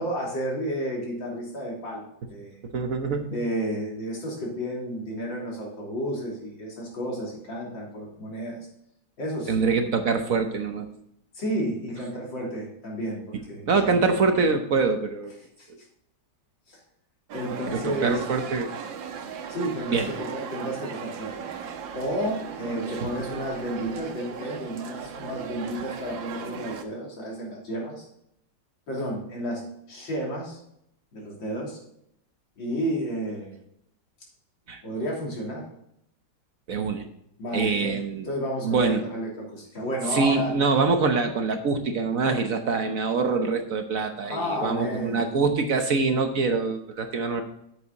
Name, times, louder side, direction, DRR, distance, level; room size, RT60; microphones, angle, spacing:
voice 1, 0.0-2.6 3.3-8.6 9.2-9.5 11.3-13.9 15.6-15.7 16.7-16.8 17.3-18.2 19.5-21.5 21.9-28.1 28.9-30.6 31.1-31.8 32.6-33.6 34.8-35.7 37.4-40.5 42.2-42.4 44.2-45.2, equal, 90° left, -3 dB, 3.9 m, -32 dB
voice 2, 2.7-3.4 9.5-10.9 13.7-15.3 15.7-15.8 17.7-18.7 19.9-20.1 34.7-34.8 36.7-37.0 37.5-38.3 38.6-39.0 40.1-47.4, right 4 dB, 55° right, 6 dB, 1.2 m, -24 dB
sound 1, 17.3-26.8, right 7 dB, 85° right, 1.7 m, -37 dB
8.5 x 8.4 x 4.0 m, 0.74 s
omnidirectional pair, 2.0 m